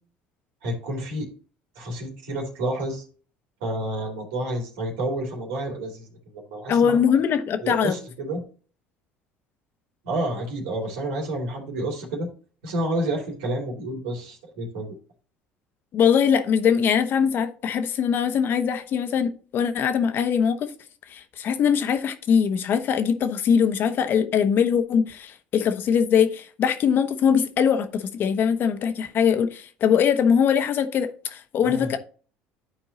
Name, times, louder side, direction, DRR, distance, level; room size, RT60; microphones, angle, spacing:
voice 1, 0.6-1.3 1.8-3.0 3.6-7.0 7.6-8.4 10.0-12.3 12.6-14.9 31.6-31.9, right 1 dB, 85° right, 2.8 m, -29 dB
voice 2, 6.7-8.0 15.9-20.7 21.1-32.0, left 7 dB, 55° left, 1.2 m, -22 dB
11.0 x 4.5 x 2.8 m
supercardioid pair, 85°, 4 cm